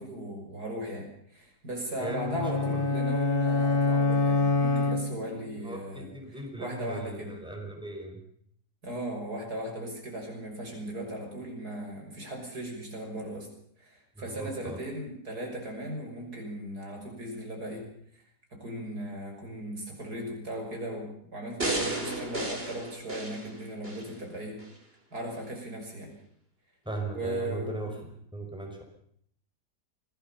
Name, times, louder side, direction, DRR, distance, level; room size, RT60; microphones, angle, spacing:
voice 1, 0.0-7.4 8.8-13.5 13.8-17.9 18.5-24.6 25.1-26.1 27.1-27.9, right 1 dB, 65° right, 1 dB, 6.6 m, -37 dB
sound 1, 2.0-5.5, left 3 dB, 30° left, 2.2 m, -26 dB
voice 2, 2.0-2.8 5.6-8.2 14.2-14.8 26.9-27.9 28.3-28.8, right 2 dB, 5° right, 1 dB, 5.6 m, -38 dB
sound 2, 21.6-24.1 24.6-24.7, right 2 dB, 35° right, 5.1 m, -33 dB
25.5 x 19.0 x 7.1 m, 0.66 s
omnidirectional pair, 1.8 m